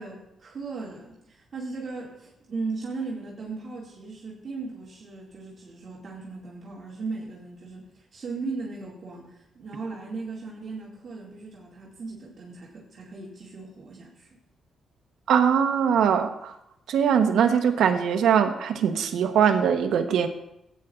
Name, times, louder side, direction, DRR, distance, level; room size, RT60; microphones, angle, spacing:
voice 1, 0.0-14.3, right 3 dB, 45° right, -5 dB, 2.2 m, -37 dB
voice 2, 15.3-16.5 16.9-20.3, right 7 dB, 85° right, 7 dB, 1.0 m, -21 dB
18.0 x 9.2 x 2.5 m, 0.82 s
cardioid pair, 140°, 0 cm